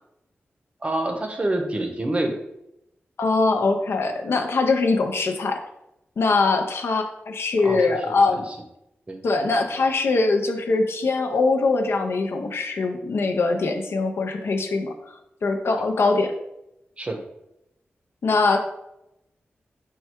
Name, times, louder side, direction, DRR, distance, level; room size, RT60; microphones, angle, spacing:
voice 1, 0.8-2.4 7.6-8.4 9.1-9.2 17.0-17.2, right 1 dB, 30° right, 4 dB, 0.6 m, -27 dB
voice 2, 3.2-5.6 6.2-8.4 9.2-14.9 15.4-16.3 18.2-18.6, left 3 dB, 80° left, 5 dB, 0.5 m, -22 dB
4.5 x 2.3 x 4.3 m, 0.85 s
wide cardioid pair, 80°, 4 cm